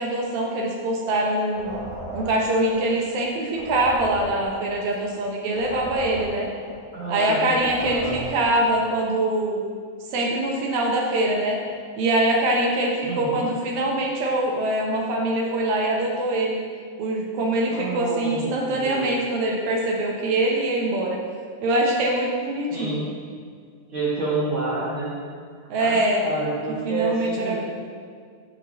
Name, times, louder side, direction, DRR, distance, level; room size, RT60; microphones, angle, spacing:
voice 1, 0.0-1.7 2.1-6.5 7.1-9.6 10.1-11.6 12.0-16.6 17.0-21.2 21.6-23.0 25.7-26.2 26.9-27.6, right 1 dB, 80° right, -1 dB, 1.8 m, -23 dB
sound 1, 1.5-3.2 3.5-7.2 7.5-8.8, right 1 dB, 30° right, 1.6 m, -37 dB
voice 2, 6.9-8.2 13.0-13.4 17.6-19.1 22.7-23.1 23.9-25.2 25.8-27.6, right 3 dB, 55° right, -8 dB, 1.5 m, -29 dB
9.2 x 5.7 x 2.7 m, 2.1 s
omnidirectional pair, 3.7 m